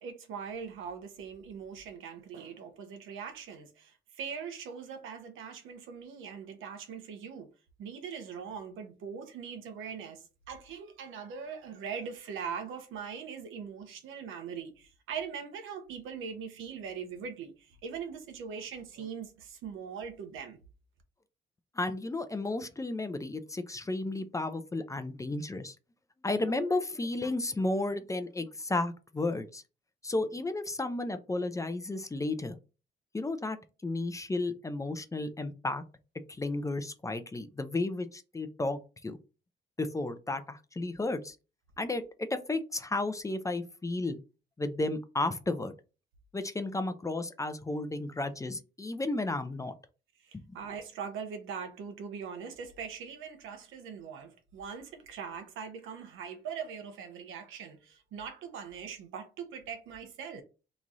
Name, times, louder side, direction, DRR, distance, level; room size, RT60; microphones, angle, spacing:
voice 1, 0.0-7.5 7.8-20.6 50.2-60.4, right 6 dB, 85° right, 0.9 m, -41 dB
voice 2, 21.8-25.7 26.2-29.6 30.0-32.6 33.1-33.6 33.8-35.8 36.3-39.2 39.8-41.4 41.8-44.2 44.6-45.7 46.3-49.7, left 2 dB, 15° left, 0.5 m, -33 dB
3.1 x 2.4 x 3.9 m
cardioid pair, 90°, 20 cm